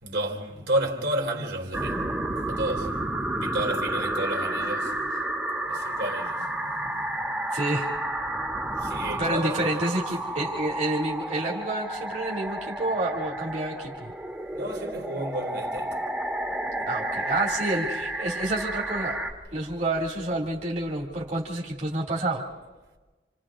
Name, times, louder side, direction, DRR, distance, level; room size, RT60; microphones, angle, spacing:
voice 1, 0.0-2.1 2.5-3.0 3.3-5.3 5.7-6.5 8.8-10.2 14.5-16.0, right 1 dB, 70° right, 3.9 m, -31 dB
sound 1, 1.7-19.3, right 1 dB, 10° right, 1.4 m, -31 dB
voice 2, 7.5-7.9 9.2-14.1 16.9-19.2 19.5-22.4, right 2 dB, 40° right, 2.8 m, -29 dB
29.5 x 28.0 x 3.8 m
head